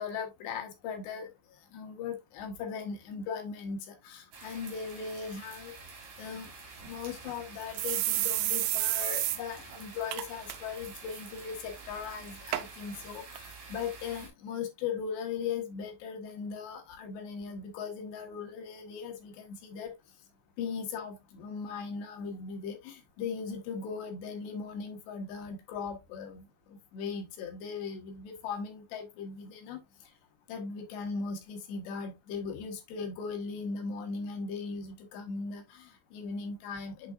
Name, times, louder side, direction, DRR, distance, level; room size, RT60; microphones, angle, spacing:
voice 1, 0.0-1.3 1.7-5.7 6.2-6.5 6.8-19.9 20.6-29.8 30.5-37.1, left 5 dB, 75° left, 3.4 m, -38 dB
sound 1, 4.3-14.3, right 4 dB, 55° right, 3.9 m, -48 dB
sound 2, 6.8-6.9 7.3-7.4 7.8-9.4 9.7-9.8 10.1-10.6 10.9-11.2 11.9-12.0 12.5-12.7 13.4-13.5, right 15 dB, 85° right, 2.8 m, -30 dB
7.8 x 5.6 x 2.4 m
omnidirectional pair, 5.1 m